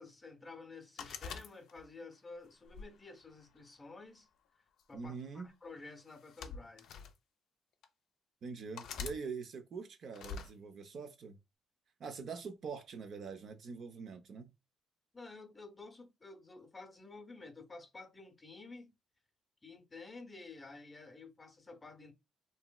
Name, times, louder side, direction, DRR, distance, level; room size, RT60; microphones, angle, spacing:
voice 1, 0.0-4.3 4.9-6.9 15.1-18.9 19.6-22.1, left 3 dB, 25° left, 0.6 m, -51 dB
sound 1, 1.0-2.0 2.7-3.8 4.8-5.1 6.1-7.1 7.8-7.9 8.8-9.2 10.1-10.5, left 5 dB, 75° left, 0.4 m, -45 dB
voice 2, 4.9-5.5 8.4-11.4 12.0-14.5, right 5 dB, 60° right, 0.5 m, -44 dB
2.9 x 2.7 x 2.2 m
cardioid pair, 80°, 0 cm